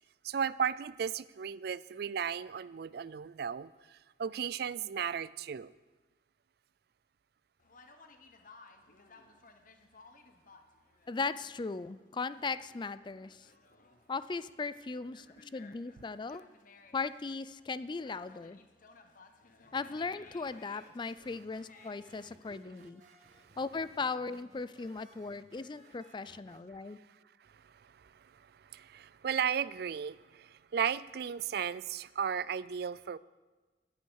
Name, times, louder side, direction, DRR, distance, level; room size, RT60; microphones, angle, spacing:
voice 1, 0.2-5.7 23.2-23.5 26.7-26.8 27.5-33.2, right 7 dB, 60° right, 18 dB, 0.4 m, -35 dB
Conversation, 7.6-22.6, left 3 dB, 50° left, 1.2 m, -60 dB
voice 2, 11.1-13.5 14.1-16.4 16.9-18.6 19.7-23.0 23.6-27.0, left 4 dB, 25° left, 15 dB, 0.4 m, -38 dB
sound 1, 19.6-26.6, right 1 dB, 40° right, 1.9 m, -62 dB
19.0 x 8.4 x 6.4 m, 1.3 s
head